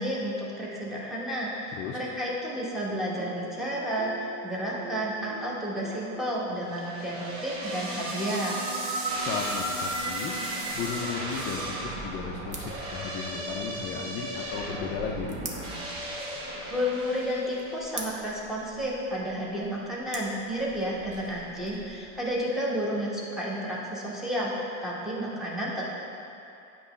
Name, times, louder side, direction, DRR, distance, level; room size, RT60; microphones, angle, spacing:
voice 1, 0.0-8.6 16.7-25.9, equal, ahead, -6 dB, 1.0 m, -31 dB
sound 1, 3.2-7.6, right 3 dB, 70° right, 0.8 m, -44 dB
sound 2, 6.7-18.0, right 1 dB, 35° right, 1.0 m, -35 dB
sound 3, 9.1-22.4, right 2 dB, 20° right, 0.6 m, -48 dB
voice 2, 9.2-10.3 10.7-15.4, left 6 dB, 30° left, -1 dB, 0.4 m, -35 dB
8.5 x 3.0 x 5.5 m, 2.7 s
supercardioid pair, 145°, 39 cm